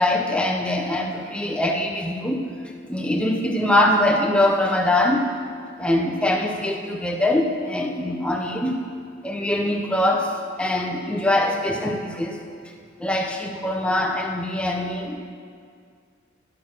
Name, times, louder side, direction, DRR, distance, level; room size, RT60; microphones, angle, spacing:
voice 1, 0.0-2.4 2.9-5.2 5.8-8.7 9.2-10.3 10.6-12.4 13.0-15.2, left 1 dB, 5° left, 1 dB, 0.7 m, -22 dB
12.5 x 5.9 x 6.5 m, 2.2 s
head